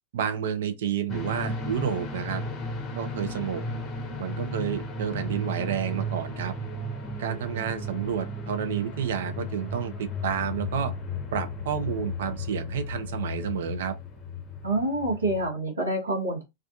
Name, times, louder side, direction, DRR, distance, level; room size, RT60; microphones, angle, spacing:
voice 1, 0.1-2.4 3.0-3.6 4.2-6.5 7.2-10.9 11.3-13.9, right 8 dB, 60° right, 0.5 m, -30 dB
sound 1, 1.1-15.5, left 1 dB, 30° left, 0.7 m, -34 dB
voice 2, 14.6-16.4, right 2 dB, 75° right, 1.0 m, -27 dB
2.4 x 2.3 x 2.5 m
figure-of-eight pair, 90°, 0 cm